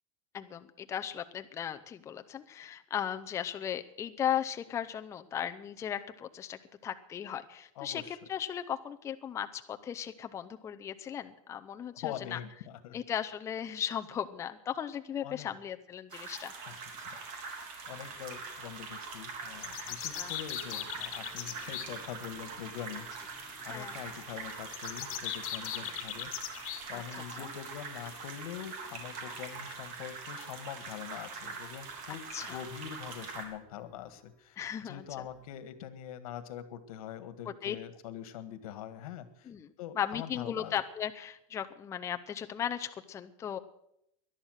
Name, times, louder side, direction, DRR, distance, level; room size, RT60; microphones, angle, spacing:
voice 1, 0.3-12.4 12.9-16.5 20.0-20.3 23.7-24.0 25.8-25.9 26.9-27.5 32.3-32.6 34.6-35.1 37.6-37.8 39.5-39.7 40.0-43.6, left 9 dB, 15° left, 8 dB, 0.5 m, -37 dB
voice 2, 7.8-8.2 12.0-13.0 15.2-15.6 16.7-23.3 23.6-26.3 26.9-34.6 34.8-39.5 39.8-40.7, left 10 dB, 85° left, 12 dB, 1.7 m, -44 dB
sound 1, 16.1-33.4, right 4 dB, 45° right, 3.4 m, -43 dB
sound 2, 17.8-35.4, left 2 dB, ahead, 2.6 m, -62 dB
sound 3, 19.6-21.8 24.7-26.8, left 13 dB, 65° left, 2.0 m, -38 dB
18.5 x 11.5 x 6.4 m, 0.78 s
supercardioid pair, 165°, 18 cm